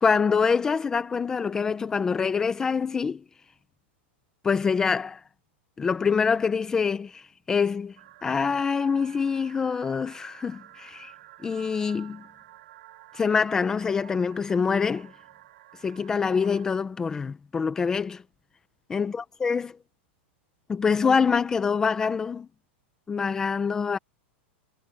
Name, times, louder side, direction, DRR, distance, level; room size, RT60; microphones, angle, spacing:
voice 1, 0.0-3.2 4.4-5.2 5.8-8.0 8.2-11.1 11.4-12.2 13.1-15.1 15.8-18.2 18.9-19.8 20.7-22.5 23.1-24.0, left 5 dB, 10° left, 0.7 m, -25 dB
sound 1, 8.0-16.7, right 15 dB, 60° right, 5.8 m, -51 dB
supercardioid pair, 175°, 6 cm